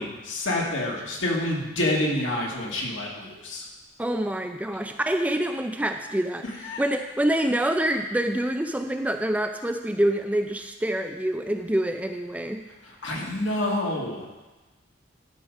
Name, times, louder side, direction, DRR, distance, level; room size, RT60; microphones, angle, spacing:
voice 1, 0.0-3.7 6.6-6.9 12.8-14.3, left 1 dB, 70° left, -2 dB, 2.1 m, -28 dB
voice 2, 4.0-6.4 6.8-12.6, right 1 dB, 5° right, 6 dB, 0.4 m, -26 dB
11.5 x 5.0 x 6.4 m, 1.1 s
head